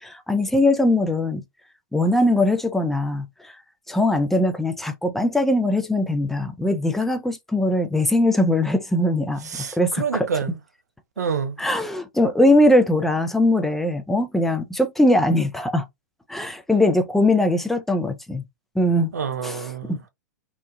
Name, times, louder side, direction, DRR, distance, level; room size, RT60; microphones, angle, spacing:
voice 1, 0.0-1.4 1.9-3.6 3.9-9.5 9.8-10.3 11.6-15.9 16.3-18.4 18.8-19.1 19.4-20.0, left 1 dB, 5° left, 0.3 m, -21 dB
voice 2, 9.4-10.6 11.2-11.6 19.1-20.0, right 6 dB, 65° right, 0.5 m, -27 dB
3.0 x 2.1 x 2.2 m
figure-of-eight pair, 100°, 10 cm